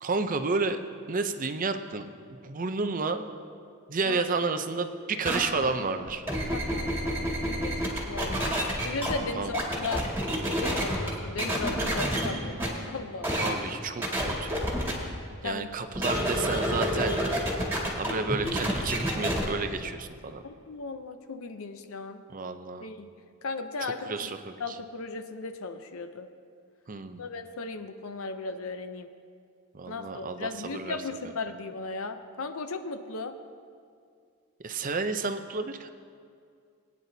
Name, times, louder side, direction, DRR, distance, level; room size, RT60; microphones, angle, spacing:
voice 1, 0.0-0.8 1.1-2.1 2.4-3.3 3.9-6.2 9.4-9.5 13.4-14.6 15.4-17.1 18.0-20.4 22.3-22.9 23.8-24.8 26.9-27.2 29.7-31.0 34.6-35.9, right 4 dB, 35° right, 8 dB, 0.5 m, -31 dB
sound 1, 5.2-5.4 6.1-9.1 9.5-11.1 11.4-12.3 12.6-12.7 13.2-13.5 14.0-14.9 15.9-19.4, equal, 10° right, 2.0 m, -28 dB
voice 2, 6.5-10.0 10.5-13.3 15.4-15.7 20.4-22.2 22.8-23.1 23.4-24.3 24.6-26.3 27.2-29.1 29.9-33.4, left 3 dB, 65° left, 8 dB, 0.6 m, -36 dB
20.5 x 9.7 x 2.7 m, 2.3 s
head